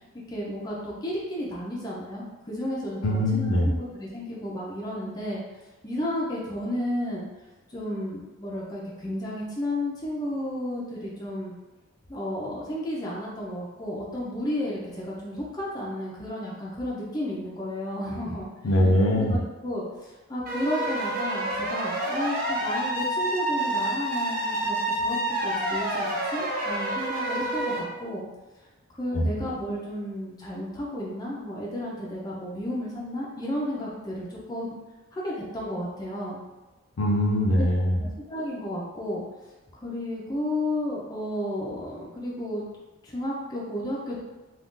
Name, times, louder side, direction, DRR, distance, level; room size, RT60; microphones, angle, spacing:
voice 1, 0.3-5.4 5.8-7.3 7.7-11.5 12.1-18.5 19.2-28.3 29.0-34.8 35.1-36.4 37.6-37.7 38.0-39.2 39.8-42.6 43.0-44.2, left 1 dB, 20° left, -5 dB, 0.4 m, -32 dB
voice 2, 3.0-3.7 18.6-19.4 29.1-29.3 37.0-38.0, left 1 dB, 70° left, -1 dB, 0.5 m, -22 dB
sound 1, 20.5-27.8, right 1 dB, 40° right, 0.5 m, -28 dB
2.5 x 2.3 x 3.6 m, 1.1 s
head